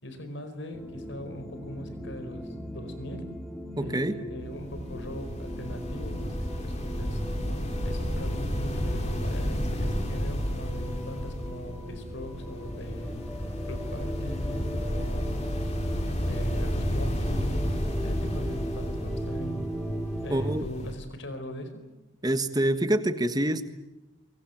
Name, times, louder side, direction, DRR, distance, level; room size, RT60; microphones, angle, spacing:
voice 1, 0.0-3.3 3.8-7.2 7.8-13.2 13.7-15.5 16.2-17.7 18.0-19.6 20.2-21.8, left 1 dB, 55° left, 9 dB, 4.7 m, -40 dB
sound 1, 0.7-20.6, equal, 5° left, 2.2 m, -37 dB
voice 2, 3.8-4.2 20.3-20.7 22.2-23.7, right 1 dB, 20° right, 10 dB, 1.5 m, -26 dB
sound 2, 4.4-20.9, equal, 30° left, 4.6 m, -32 dB
24.0 x 23.5 x 9.3 m, 1.1 s
head